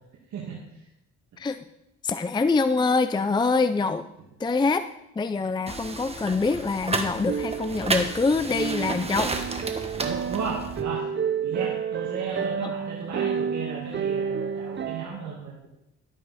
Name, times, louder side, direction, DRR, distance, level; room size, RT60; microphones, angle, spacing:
voice 1, 0.3-0.8 10.1-11.1 11.4-15.6, right 5 dB, 70° right, -3 dB, 2.1 m, -34 dB
voice 2, 2.0-4.1 4.4-4.9 5.2-9.3 12.6-12.7, left 4 dB, 15° left, 11 dB, 0.4 m, -25 dB
sound 1, 5.7-10.8, right 3 dB, 20° right, 1.3 m, -32 dB
sound 2, 7.3-15.1, right 7 dB, 40° right, 0.6 m, -30 dB
12.5 x 8.6 x 4.2 m, 0.85 s
cardioid pair, 90°, 30 cm